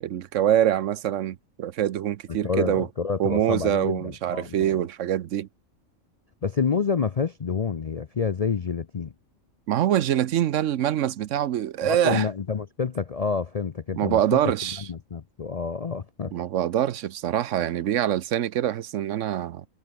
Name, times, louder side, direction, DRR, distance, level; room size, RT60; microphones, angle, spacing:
voice 1, 0.0-2.9 3.2-5.5 9.7-12.3 13.9-14.9 16.3-19.6, right 11 dB, 70° right, 1.0 m, -24 dB
voice 2, 2.4-4.9 6.4-9.1 11.8-14.4 14.8-16.3, left 5 dB, 45° left, 0.5 m, -28 dB
omnidirectional pair, 1.4 m